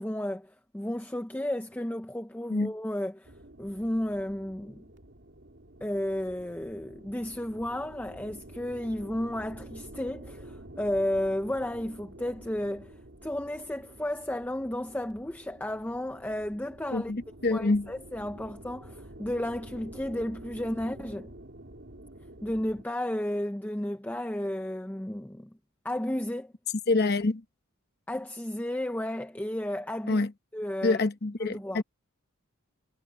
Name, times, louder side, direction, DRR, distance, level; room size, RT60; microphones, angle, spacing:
voice 1, 0.0-3.3 3.6-4.8 5.8-17.1 17.5-21.3 22.4-25.5 25.8-26.5 28.1-30.2 30.5-31.0 31.4-31.8, left 1 dB, 10° left, 0.5 m, -33 dB
sound 1, 3.2-22.8, right 1 dB, 55° right, 2.9 m, -49 dB
voice 2, 16.9-17.9 26.9-27.4 30.1-30.3 30.8-31.8, left 3 dB, 45° left, 1.0 m, -26 dB
head